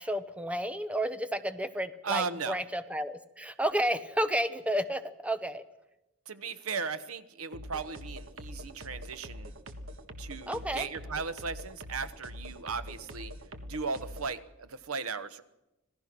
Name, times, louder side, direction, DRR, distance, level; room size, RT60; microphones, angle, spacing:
voice 1, 0.0-5.6 10.5-10.9, equal, 5° right, 11 dB, 0.9 m, -31 dB
voice 2, 2.0-2.6 6.3-9.5 10.2-13.3 13.6-15.4, right 5 dB, 85° right, 12 dB, 1.1 m, -36 dB
sound 1, 7.5-14.3, equal, 65° right, 1.5 m, -44 dB
26.5 x 16.5 x 6.1 m, 0.98 s
head